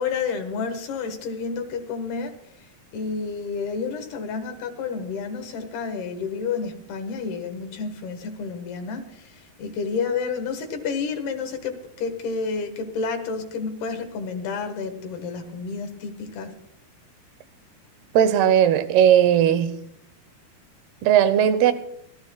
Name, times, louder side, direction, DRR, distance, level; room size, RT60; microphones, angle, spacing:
voice 1, 0.0-16.6, left 5 dB, 80° left, 3.4 m, -30 dB
voice 2, 18.1-19.7 21.0-21.7, right 9 dB, 85° right, 2.9 m, -17 dB
26.0 x 15.0 x 2.3 m
omnidirectional pair, 4.5 m